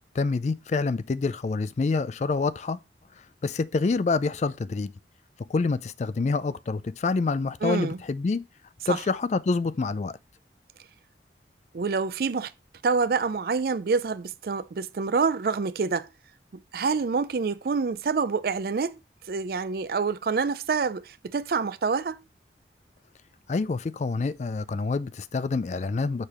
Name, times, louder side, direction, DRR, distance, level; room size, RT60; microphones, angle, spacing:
voice 1, 0.1-2.8 3.4-4.9 5.5-8.4 8.9-10.2 23.5-26.3, left 4 dB, 40° left, 0.3 m, -27 dB
voice 2, 7.6-8.0 8.9-9.0 11.7-12.5 12.8-16.1 16.5-19.0 19.3-22.2, right 5 dB, 55° right, 0.4 m, -27 dB
6.6 x 3.4 x 5.9 m
head